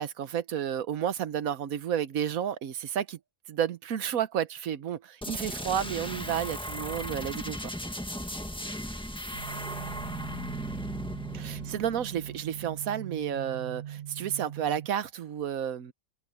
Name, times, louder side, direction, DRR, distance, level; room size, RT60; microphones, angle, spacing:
voice 1, 0.0-3.2 3.5-7.7 11.3-15.9, right 9 dB, 85° right, 1.3 m, -31 dB
sound 1, 5.2-12.8, equal, 5° left, 1.4 m, -37 dB
voice 2, 8.4-11.7, left 1 dB, 85° left, 8.6 m, -62 dB
sound 2, 9.3-14.9, right 11 dB, 55° right, 1.0 m, -41 dB
omnidirectional pair, 1.4 m